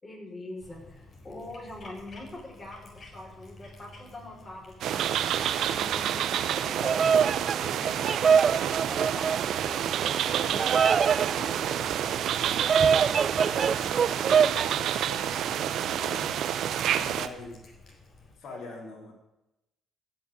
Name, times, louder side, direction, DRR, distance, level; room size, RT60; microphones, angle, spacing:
voice 1, 0.0-10.7 11.3-12.3, left 1 dB, 30° left, -1 dB, 5.7 m, -44 dB
Cat, 0.6-18.4, left 2 dB, 50° left, 3.9 m, -53 dB
sound 1, 4.8-17.3, right 10 dB, 75° right, 0.8 m, -29 dB
Bird vocalization bird call bird song, 6.6-14.7, right 6 dB, 50° right, 0.4 m, -25 dB
voice 2, 13.3-16.4 16.9-17.6 18.4-19.1, left 3 dB, 65° left, -2 dB, 3.9 m, -43 dB
15.5 x 6.3 x 8.5 m, 0.90 s
cardioid pair, 90°, 0 cm